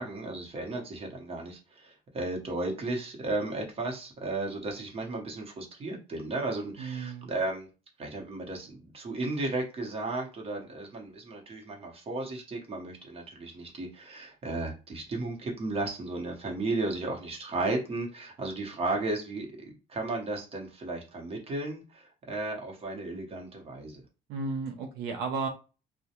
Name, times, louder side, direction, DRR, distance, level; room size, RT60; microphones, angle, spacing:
voice 1, 0.0-7.7 8.0-24.0, right 2 dB, 35° right, 0 dB, 0.9 m, -34 dB
voice 2, 6.8-7.3 24.3-25.5, right 4 dB, 80° right, 4 dB, 0.5 m, -33 dB
2.2 x 2.1 x 2.8 m, 0.32 s
cardioid pair, 110°, 17 cm